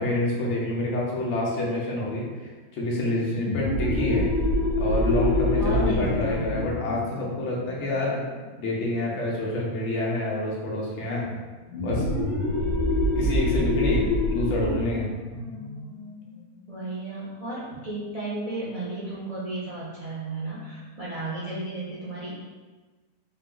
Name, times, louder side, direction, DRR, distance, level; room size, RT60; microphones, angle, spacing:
voice 1, 0.0-4.3 4.8-8.2 8.6-11.2 11.8-12.0 13.2-15.1, left 1 dB, 50° left, -4 dB, 1.1 m, -27 dB
sound 1, 3.3-8.6 11.7-17.0, left 1 dB, 75° left, 1.6 m, -26 dB
voice 2, 5.6-6.4 12.4-13.1 16.7-22.4, right 2 dB, 50° right, -7 dB, 0.4 m, -34 dB
4.2 x 2.2 x 3.7 m, 1.3 s
omnidirectional pair, 1.7 m